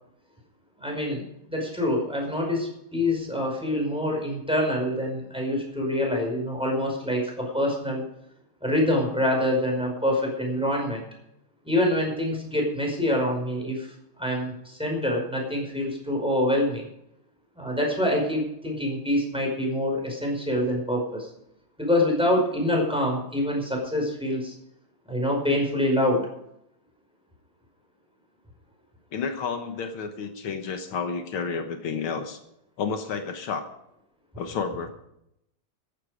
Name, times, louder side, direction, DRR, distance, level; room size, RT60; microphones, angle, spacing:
voice 1, 0.8-1.2 1.5-8.0 8.6-11.0 11.6-16.9 17.6-21.3 21.8-24.5 25.1-26.3, left 1 dB, ahead, 0 dB, 5.2 m, -26 dB
voice 2, 29.1-32.4 32.8-33.6 34.4-34.9, left 5 dB, 75° left, 6 dB, 2.1 m, -31 dB
14.5 x 11.5 x 5.1 m, 0.78 s
omnidirectional pair, 2.3 m